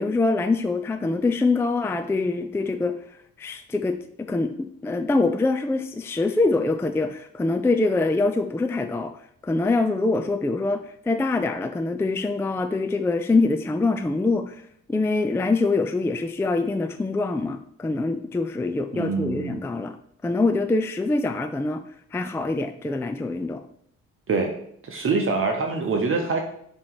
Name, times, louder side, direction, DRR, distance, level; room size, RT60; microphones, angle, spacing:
voice 1, 0.0-2.9 3.4-9.1 9.4-14.6 14.9-20.0 20.2-21.8 22.1-23.6, left 3 dB, 10° left, 8 dB, 0.3 m, -24 dB
voice 2, 18.9-19.6 24.3-24.5 24.8-26.4, right 4 dB, 45° right, 2 dB, 1.0 m, -25 dB
7.2 x 3.1 x 4.7 m, 0.68 s
cardioid pair, 90°, 30 cm